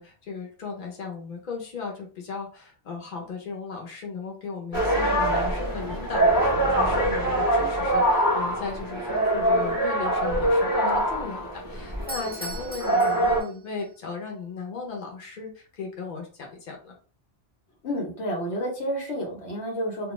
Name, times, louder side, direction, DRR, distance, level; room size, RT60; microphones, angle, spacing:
voice 1, 0.0-16.9, left 4 dB, 50° left, 1 dB, 0.8 m, -36 dB
sound 1, 4.7-13.4, right 1 dB, 20° left, 0.8 m, -24 dB
Doorbell, 11.9-13.9, right 1 dB, 15° right, 0.3 m, -39 dB
voice 2, 17.8-20.1, equal, 90° left, 1 dB, 1.2 m, -30 dB
2.4 x 2.3 x 3.0 m, 0.38 s
omnidirectional pair, 1.1 m